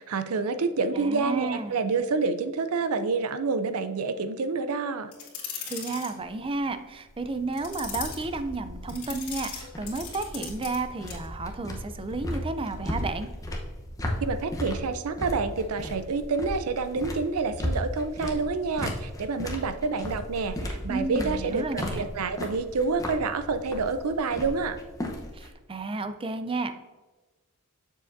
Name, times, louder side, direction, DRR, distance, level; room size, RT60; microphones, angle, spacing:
voice 1, 0.0-5.1 14.2-24.8, right 4 dB, 75° right, 11 dB, 0.5 m, -28 dB
voice 2, 0.9-1.8 5.6-13.3 20.9-22.1 25.3-26.7, right 3 dB, 25° right, 10 dB, 0.4 m, -32 dB
sound 1, 5.1-6.1 7.5-8.2 8.9-10.8 11.1-11.3, left 7 dB, 90° left, 2.2 m, -38 dB
sound 2, 6.2-25.5, left 1 dB, 15° left, 0.9 m, -36 dB
7.4 x 6.7 x 2.6 m, 1.2 s
head